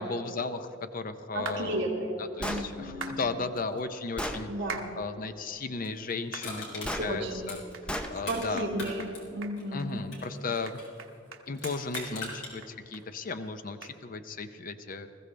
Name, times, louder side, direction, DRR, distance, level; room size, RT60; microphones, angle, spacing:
voice 1, 0.0-1.9 2.2-4.5 5.0-7.6 8.1-8.7 9.7-10.8 11.5-15.1, left 4 dB, 45° left, 9 dB, 0.6 m, -35 dB
voice 2, 1.3-3.2 4.5-4.9 7.0-7.5 8.3-10.0, right 1 dB, 70° right, -6 dB, 2.2 m, -33 dB
sound 1, 1.5-1.6 3.0-3.2 4.7-4.9 5.4-5.5 6.3-6.5 7.0-7.1 7.7-7.9 8.2-8.3 8.6-8.7 9.0-9.1 9.4-9.9 10.2-10.3 10.7-13.0 13.3-13.4 13.8-13.9, right 5 dB, 85° right, 1.2 m, -41 dB
Gunshot gunfire, 2.4-2.7 3.6-3.7 4.2-4.4 6.8-7.1 7.9-8.1, equal, 5° left, 0.8 m, -33 dB
Crushing, 6.4-8.5 8.8-11.0 11.5-12.5 13.0-13.1, left 3 dB, 65° left, 3.8 m, -41 dB
20.5 x 14.5 x 3.3 m, 2.8 s
head